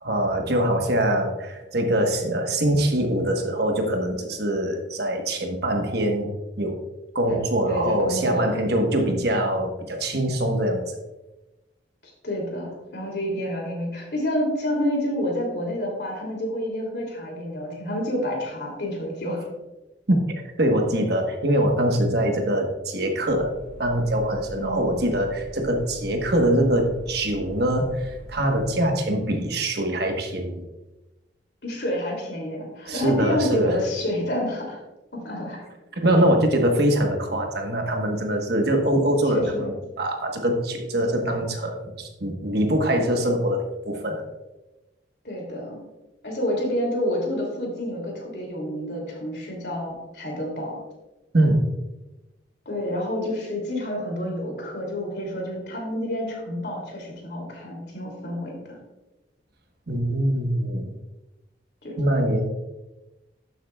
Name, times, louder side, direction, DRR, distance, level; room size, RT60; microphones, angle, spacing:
voice 1, 0.0-6.3 6.6-6.8 7.1-10.8 20.1-23.5 23.8-30.7 32.9-33.8 36.0-44.2 51.3-51.6 59.9-60.9 62.0-62.4, right 1 dB, 60° right, 3 dB, 1.3 m, -23 dB
voice 2, 7.7-8.5 12.2-19.5 24.6-25.0 31.6-34.8 35.1-35.6 39.3-39.7 45.2-45.8 46.2-50.8 52.6-58.8 61.8-62.0, left 1 dB, 65° left, 0 dB, 2.8 m, -29 dB
sound 1, 23.2-28.7, right 1 dB, 85° right, 3.0 m, -42 dB
12.0 x 7.6 x 2.4 m, 1.1 s
head